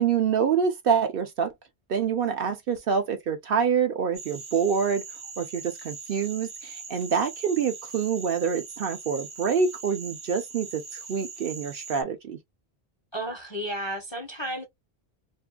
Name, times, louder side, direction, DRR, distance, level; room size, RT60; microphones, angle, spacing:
voice 1, 0.0-1.5 1.9-5.0 5.4-12.4, right 6 dB, 60° right, 0.8 m, -26 dB
sound 1, 4.1-12.0, right 5 dB, 40° right, 0.4 m, -41 dB
voice 2, 13.1-14.7, equal, 30° left, 0.6 m, -32 dB
2.6 x 2.5 x 2.2 m
omnidirectional pair, 1.1 m